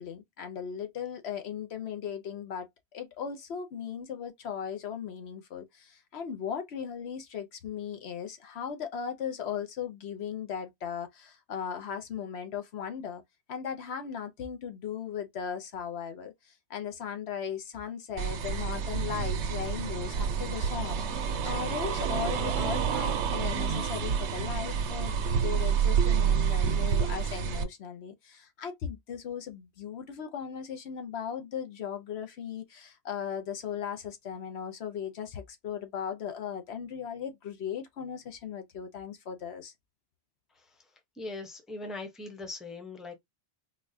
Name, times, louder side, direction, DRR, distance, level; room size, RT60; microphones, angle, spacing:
voice 1, 0.0-13.2 13.5-39.7, left 8 dB, 75° left, 1.0 m, -37 dB
sound 1, 18.2-27.6, right 7 dB, 90° right, 0.9 m, -28 dB
voice 2, 41.2-43.2, left 3 dB, ahead, 0.7 m, -40 dB
3.9 x 2.3 x 2.6 m
omnidirectional pair, 1.1 m